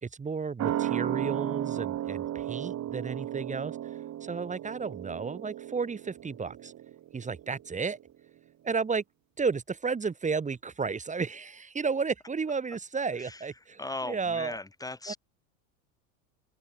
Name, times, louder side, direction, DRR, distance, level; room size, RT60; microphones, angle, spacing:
voice 1, 0.0-3.8 4.2-6.7 7.1-8.0 8.6-9.0 9.4-14.5 15.1-15.2, right 5 dB, 15° right, 2.9 m, -32 dB
sound 1, 0.6-7.7 8.0-8.1, right 12 dB, 40° right, 7.6 m, -34 dB
voice 2, 13.8-15.2, left 2 dB, 10° left, 6.8 m, -38 dB
open air
supercardioid pair, 115°, 42 cm